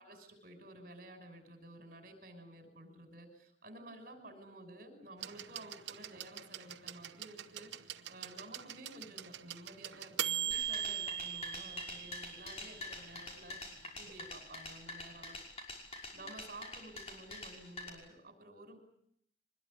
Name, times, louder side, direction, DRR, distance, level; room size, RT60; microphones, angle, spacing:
voice 1, 0.0-15.4 16.1-18.8, right 1 dB, 50° right, 6 dB, 6.0 m, -53 dB
sound 1, 5.2-13.0 14.1-14.2, right 10 dB, 80° right, 1.0 m, -41 dB
sound 2, 10.5-17.9, left 2 dB, 35° left, 5.7 m, -45 dB
24.0 x 21.0 x 9.6 m, 0.71 s
head